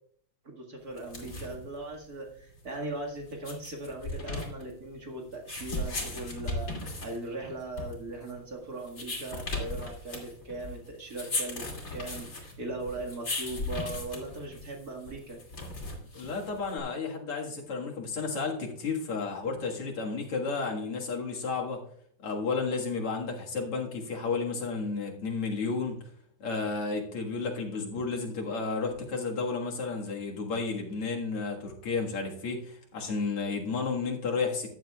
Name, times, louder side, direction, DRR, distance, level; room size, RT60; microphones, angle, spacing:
voice 1, 0.4-6.7 7.0-15.4, right 2 dB, 45° right, 0 dB, 2.3 m, -39 dB
sound 1, 0.9-16.8, left 2 dB, 40° left, 3.0 m, -38 dB
voice 2, 16.1-21.8 22.2-26.0 26.4-34.7, left 4 dB, 85° left, 0 dB, 2.7 m, -32 dB
14.5 x 10.5 x 2.3 m, 0.63 s
omnidirectional pair, 2.4 m